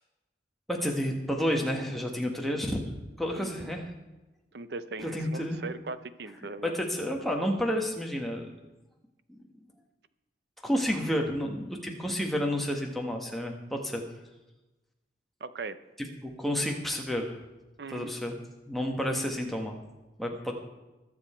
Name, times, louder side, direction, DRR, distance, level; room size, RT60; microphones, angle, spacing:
voice 1, 0.7-2.8 3.2-3.9 5.0-5.7 6.4-8.5 9.3-9.4 10.6-14.0 16.0-17.4 17.9-18.4 18.7-19.8 20.2-20.5, equal, ahead, 0 dB, 1.5 m, -30 dB
voice 2, 3.4-3.7 4.5-6.7 15.4-15.8 17.8-18.1, right 3 dB, 65° right, 13 dB, 0.6 m, -39 dB
20.5 x 7.2 x 4.4 m, 1.0 s
head